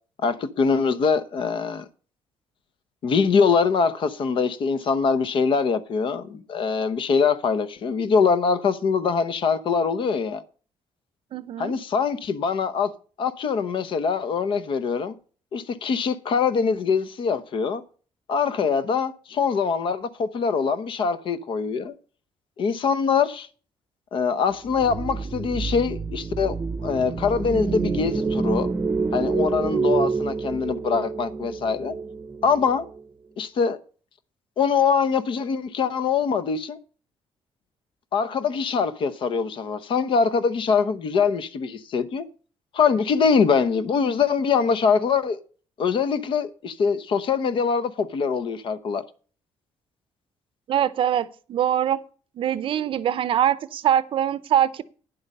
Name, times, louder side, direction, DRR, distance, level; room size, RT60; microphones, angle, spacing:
voice 1, 0.2-1.8 3.0-10.4 11.6-12.9 13.2-15.1 15.5-17.8 18.3-21.9 22.6-23.5 24.1-26.6 26.8-28.7 29.1-31.9 32.4-32.8 33.4-33.8 34.6-36.8 38.1-42.3 42.7-45.4 45.8-49.0, left 5 dB, 50° left, 0.9 m, -23 dB
voice 2, 11.3-11.8 50.7-52.0 52.4-54.8, right 10 dB, 50° right, 0.6 m, -23 dB
sound 1, 24.7-33.0, right 4 dB, 25° right, 0.8 m, -27 dB
10.5 x 7.9 x 5.4 m
cardioid pair, 160°, 11 cm